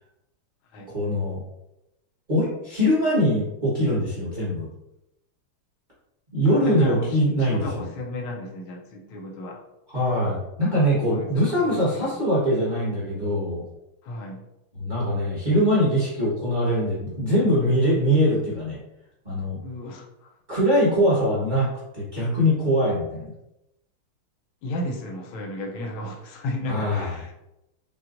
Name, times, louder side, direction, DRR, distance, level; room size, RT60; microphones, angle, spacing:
voice 1, 0.9-1.4 2.3-4.7 6.3-7.9 9.9-13.6 14.8-18.8 19.2-19.6 20.5-21.7 21.9-23.3 26.7-27.1, equal, 25° right, -9 dB, 1.1 m, -22 dB
voice 2, 6.4-7.1 7.5-9.6 10.9-12.1 14.0-14.4 19.6-20.3 24.6-27.3, left 1 dB, 75° left, 1 dB, 1.5 m, -34 dB
5.6 x 2.3 x 2.5 m, 0.89 s
omnidirectional pair, 2.4 m